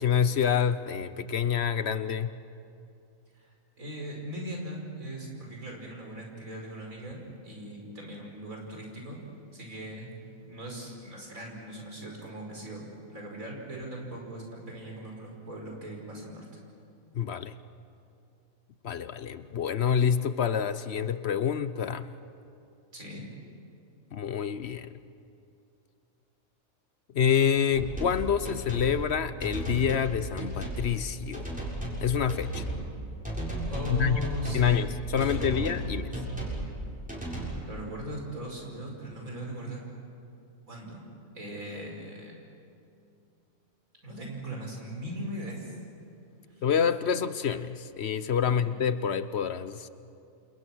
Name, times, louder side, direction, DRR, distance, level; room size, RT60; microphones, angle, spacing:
voice 1, 0.0-2.3 17.1-17.5 18.8-22.1 24.1-24.9 27.1-31.5 32.0-32.7 33.9-34.2 34.5-36.1 46.6-49.9, left 8 dB, 60° left, 13 dB, 0.9 m, -27 dB
voice 2, 3.3-9.2 9.5-10.1 10.4-16.6 22.9-23.2 33.7-35.8 37.6-39.8 40.7-41.1 41.3-42.4 44.0-45.8 46.5-46.6 48.4-48.7, right 1 dB, 90° right, -1 dB, 5.9 m, -39 dB
sound 1, 27.7-28.2 28.5-28.9 29.4-30.1 30.4-30.9 31.3-32.0 32.3-32.8 33.2-34.7 35.2-35.9 36.1-36.6 37.1-37.5, right 1 dB, 5° right, 7.3 m, -34 dB
29.0 x 28.0 x 6.2 m, 2.6 s
omnidirectional pair, 1.4 m